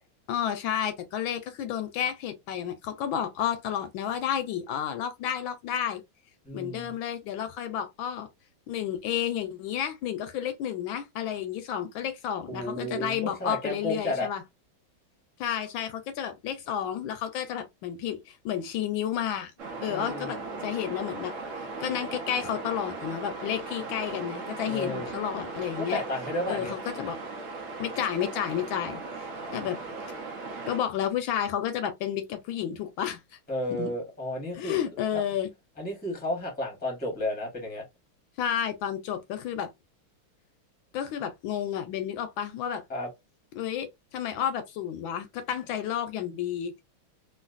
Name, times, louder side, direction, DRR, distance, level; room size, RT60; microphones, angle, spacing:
voice 1, 0.3-6.0 6.5-8.3 8.7-14.4 15.4-19.5 19.8-21.3 21.8-26.0 26.5-27.2 27.8-29.8 30.7-33.2 33.7-33.9 34.5-35.5 38.4-39.7 40.9-42.8 43.6-46.8, left 9 dB, 80° left, 1.3 m, -31 dB
voice 2, 6.4-6.9 12.5-14.3 19.9-20.3 24.6-25.1 25.8-26.7 29.4-29.6 33.5-34.8 35.1-35.2 35.8-37.8 42.9-43.1, left 1 dB, 5° left, 0.8 m, -32 dB
sound 1, 19.6-30.8, right 3 dB, 65° right, 0.7 m, -38 dB
3.1 x 2.7 x 2.4 m
omnidirectional pair, 2.2 m